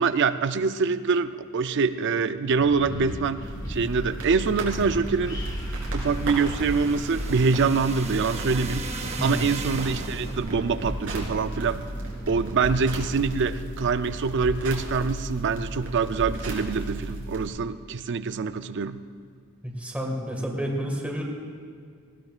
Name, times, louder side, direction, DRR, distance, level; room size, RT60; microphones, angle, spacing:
voice 1, 0.0-5.4 5.9-11.9 12.3-19.0, right 5 dB, 55° right, 12 dB, 0.5 m, -25 dB
Wind, 2.5-13.5, equal, 20° left, 1.4 m, -40 dB
sound 1, 3.4-17.5, right 1 dB, 90° right, 3.2 m, -34 dB
sound 2, 5.6-10.5, right 4 dB, 30° right, 0.8 m, -38 dB
voice 2, 19.6-21.2, equal, 5° right, -1 dB, 1.8 m, -30 dB
19.5 x 16.0 x 2.4 m, 2.2 s
head